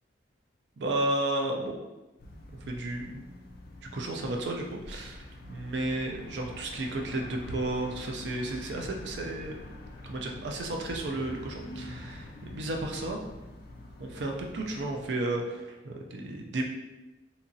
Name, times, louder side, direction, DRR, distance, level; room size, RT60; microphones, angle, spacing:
voice 1, 0.8-1.8 2.7-3.2 3.9-9.6 10.0-13.2 14.0-16.6, right 2 dB, 65° right, 2 dB, 0.4 m, -33 dB
sound 1, 2.2-15.1, left 1 dB, 50° left, 0.3 m, -45 dB
2.8 x 2.4 x 2.6 m, 1.0 s
head